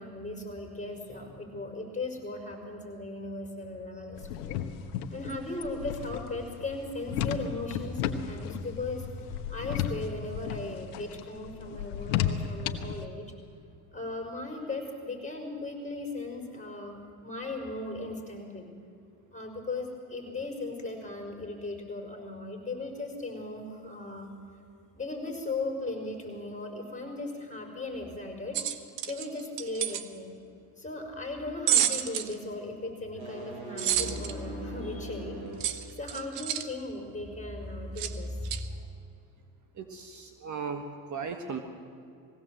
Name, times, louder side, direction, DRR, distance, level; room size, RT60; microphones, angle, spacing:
voice 1, 0.0-4.6 5.1-13.3 13.9-18.7 19.3-24.3 24.9-28.7 29.1-30.3 30.8-35.4 36.0-38.9, left 2 dB, 15° left, 2 dB, 5.2 m, -37 dB
sound 1, 4.2-13.0, left 9 dB, 80° left, 1.3 m, -34 dB
sound 2, 28.5-30.1 31.7-32.3 33.8-34.3 35.6-36.7 38.0-38.1 38.5-38.6, right 11 dB, 80° right, 1.2 m, -29 dB
sound 3, 33.0-35.8, equal, 55° right, 6.2 m, -39 dB
voice 2, 39.8-40.8 41.1-41.6, right 6 dB, 40° right, 6 dB, 1.8 m, -36 dB
20.0 x 16.5 x 7.8 m, 2.4 s
supercardioid pair, 90°, 46 cm